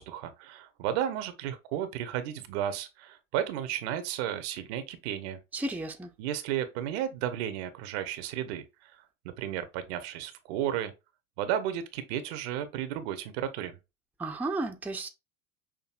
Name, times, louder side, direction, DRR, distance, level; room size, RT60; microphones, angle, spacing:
voice 1, 0.0-5.4 6.2-8.9 9.4-10.9 11.4-13.7, right 10 dB, 55° right, 0.8 m, -33 dB
voice 2, 5.5-6.1 14.2-15.1, right 2 dB, 5° right, 0.6 m, -33 dB
5.9 x 2.6 x 2.4 m
hypercardioid pair, 85°, 38 cm